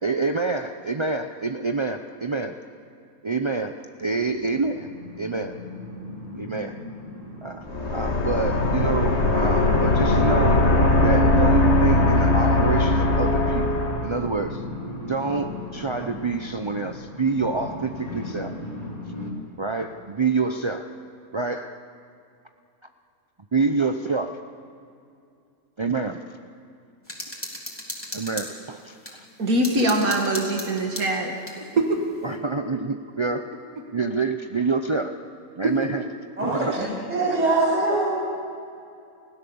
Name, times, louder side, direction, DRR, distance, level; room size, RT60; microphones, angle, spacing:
voice 1, 0.0-2.6 3.2-4.9 5.2-5.6 6.3-6.8 7.4-7.7 7.9-10.6 11.0-13.7 14.0-14.6 15.1-18.5 19.6-20.9 21.3-21.8 23.5-24.4 25.8-26.2 28.1-29.2 32.2-33.5 33.9-35.2 35.6-36.0 36.4-36.8, right 4 dB, 45° right, 6 dB, 0.3 m, -27 dB
sound 1, 4.1-19.3, left 2 dB, 25° left, 3.0 m, -37 dB
sound 2, 7.7-14.2, left 2 dB, 45° left, 2.0 m, -20 dB
sound 3, 27.1-29.2 29.6-31.6, left 1 dB, 10° left, 3.4 m, -36 dB
voice 2, 29.4-32.0 35.6-35.7 36.8-36.9, right 1 dB, 70° right, 1 dB, 2.3 m, -23 dB
voice 3, 36.4-38.0, right 2 dB, 25° right, -8 dB, 8.0 m, -23 dB
29.5 x 16.5 x 7.0 m, 2.5 s
omnidirectional pair, 1.6 m